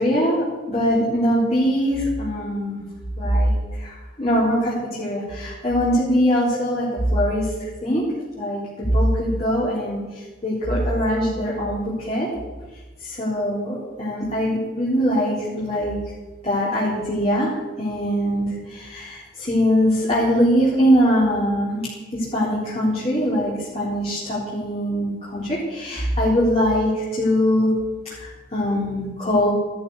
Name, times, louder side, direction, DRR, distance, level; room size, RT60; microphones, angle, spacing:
voice 1, 0.0-2.8 3.2-8.0 8.4-12.3 13.0-16.0 16.4-21.8 22.1-27.7 28.0-29.5, equal, 30° left, -7 dB, 4.1 m, -22 dB
15.5 x 13.0 x 6.6 m, 1.3 s
head